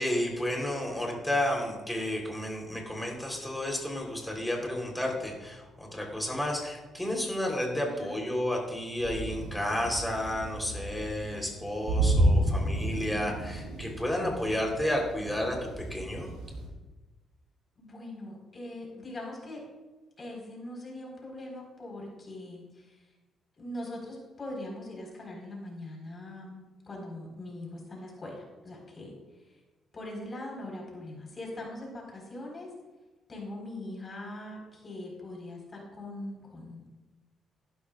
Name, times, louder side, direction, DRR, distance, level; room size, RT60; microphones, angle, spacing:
voice 1, 0.0-16.3, left 1 dB, 5° left, 0 dB, 3.6 m, -31 dB
voice 2, 7.8-8.2 17.8-19.6 20.2-23.0 23.6-29.1 29.4-29.5 29.9-32.7 33.3-36.9, left 1 dB, 35° left, -1 dB, 4.4 m, -41 dB
sound 1, 9.0-16.7, right 1 dB, 85° right, 3.6 m, -31 dB
16.0 x 11.5 x 2.4 m, 1.2 s
cardioid pair, 90°, 0 cm